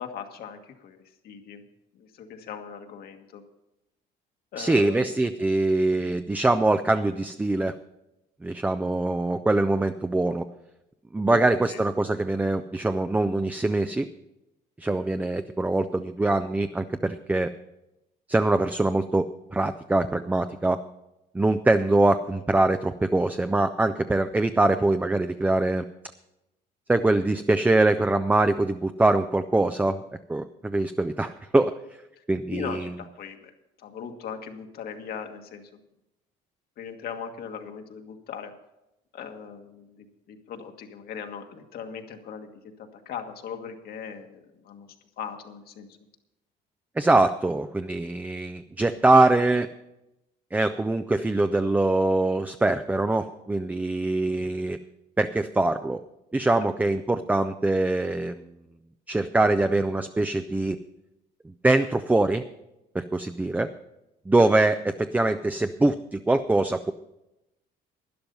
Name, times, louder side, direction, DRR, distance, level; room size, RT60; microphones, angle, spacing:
voice 1, 0.0-1.6 1.9-3.4 4.5-5.1 11.3-11.4 11.7-11.8 32.2-32.3 32.5-33.5 33.8-35.8 36.8-38.5 39.1-42.5 42.8-44.9 45.2-45.9, left 7 dB, 65° left, 5 dB, 1.6 m, -39 dB
voice 2, 4.6-7.7 8.4-10.4 11.1-14.1 14.8-17.5 18.3-20.8 21.3-25.9 26.9-30.0 30.3-31.8 32.3-32.9 47.0-49.7 50.5-54.8 55.2-56.0 56.3-58.4 59.1-60.8 61.4-62.4 62.9-63.7 64.3-66.9, right 2 dB, 10° right, 9 dB, 0.4 m, -23 dB
12.0 x 10.5 x 5.4 m, 0.90 s
cardioid pair, 110°, 17 cm